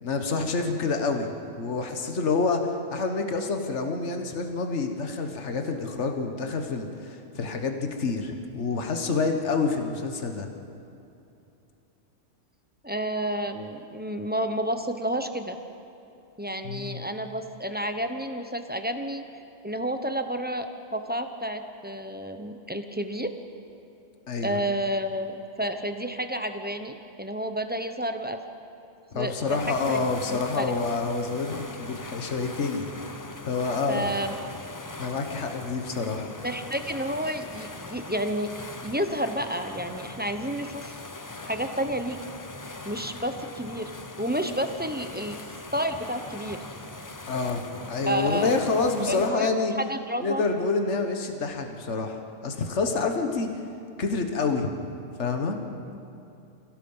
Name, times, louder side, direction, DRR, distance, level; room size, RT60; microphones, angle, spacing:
voice 1, 0.0-1.3 1.6-10.5 16.6-17.1 24.3-24.6 29.1-32.9 33.4-34.1 35.0-36.3 47.3-49.7 50.2-53.6 54.0-54.7 55.2-55.6, left 4 dB, 65° left, 5 dB, 1.7 m, -28 dB
voice 2, 12.8-15.6 16.4-19.2 19.6-20.7 20.9-23.3 24.4-28.4 29.1-30.7 33.9-34.4 36.4-38.5 38.8-41.0 41.4-42.2 42.8-43.9 44.2-45.4 45.7-46.6 48.0-48.5 49.1-49.5 49.8-50.4 55.9-56.0, right 1 dB, 10° right, 7 dB, 0.9 m, -30 dB
sound 1, 29.5-49.3, left 2 dB, 20° left, 0.6 m, -41 dB
27.5 x 16.5 x 5.6 m, 2.8 s
omnidirectional pair, 1.3 m